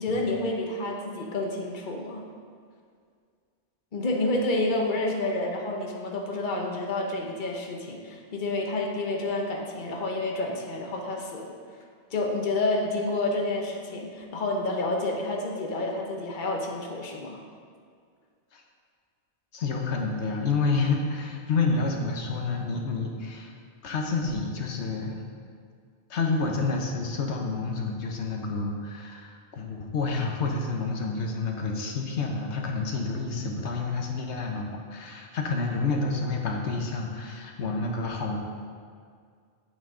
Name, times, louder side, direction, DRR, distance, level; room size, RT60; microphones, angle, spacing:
voice 1, 0.0-2.2 3.9-11.5 12.1-17.4, left 2 dB, 50° left, 0 dB, 1.2 m, -29 dB
voice 2, 19.5-23.5 23.8-25.2 26.1-38.4, left 4 dB, 90° left, 1 dB, 1.3 m, -29 dB
8.8 x 8.8 x 3.8 m, 2.1 s
omnidirectional pair, 1.1 m